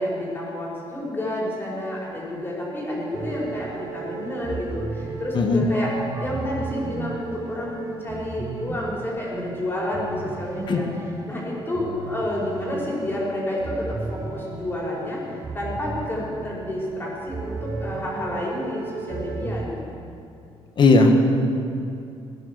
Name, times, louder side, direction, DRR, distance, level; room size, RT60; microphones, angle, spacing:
voice 1, 0.0-5.9 6.2-10.9 11.2-19.9, left 1 dB, 20° left, -4 dB, 4.8 m, -29 dB
sound 1, 3.1-19.7, right 4 dB, 30° right, 1.1 m, -35 dB
voice 2, 5.3-5.7 10.7-10.8 20.8-21.1, left 3 dB, 50° left, 4 dB, 1.8 m, -16 dB
17.0 x 10.5 x 6.7 m, 2.5 s
cardioid pair, 115°, 10 cm